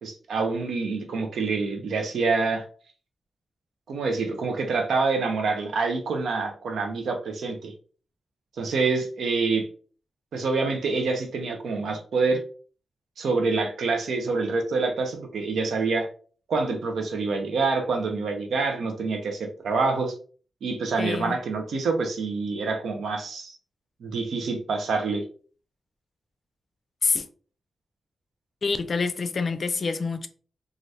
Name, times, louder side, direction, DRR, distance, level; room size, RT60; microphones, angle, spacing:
voice 1, 0.0-2.6 3.9-7.7 8.6-9.7 10.3-12.4 13.2-16.1 16.5-20.1 20.6-23.6 24.0-25.2, right 4 dB, 85° right, 0.7 m, -26 dB
voice 2, 21.0-21.4 27.0-27.2 28.6-30.3, left 4 dB, 55° left, 0.4 m, -26 dB
2.7 x 2.5 x 3.3 m
cardioid pair, 70°, 0 cm